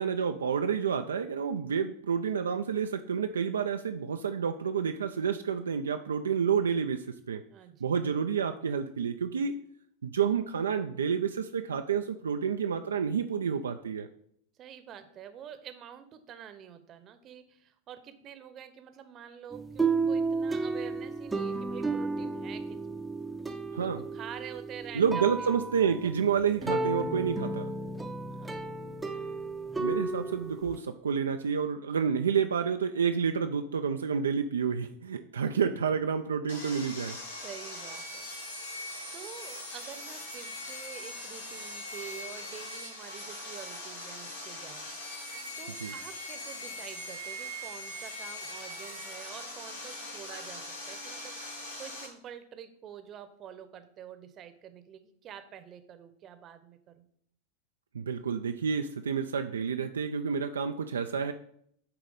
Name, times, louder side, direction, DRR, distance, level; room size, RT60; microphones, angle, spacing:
voice 1, 0.0-7.4 7.8-9.6 10.0-14.1 23.7-24.0 24.9-27.7 29.8-37.2 45.8-45.9 57.9-61.3, right 6 dB, 75° right, 6 dB, 0.4 m, -29 dB
voice 2, 7.5-7.9 14.6-23.0 23.8-25.5 25.8-26.1 28.3-28.9 35.4-35.5 37.4-38.3 39.1-45.2 45.6-57.1, right 9 dB, 35° right, 9 dB, 0.8 m, -47 dB
sound 1, 19.5-30.8, right 3 dB, 10° right, 0.7 m, -33 dB
Sawing, 36.5-52.1, left 1 dB, 80° left, 2.5 m, -41 dB
9.2 x 3.1 x 5.2 m, 0.67 s
figure-of-eight pair, 90°, 0 cm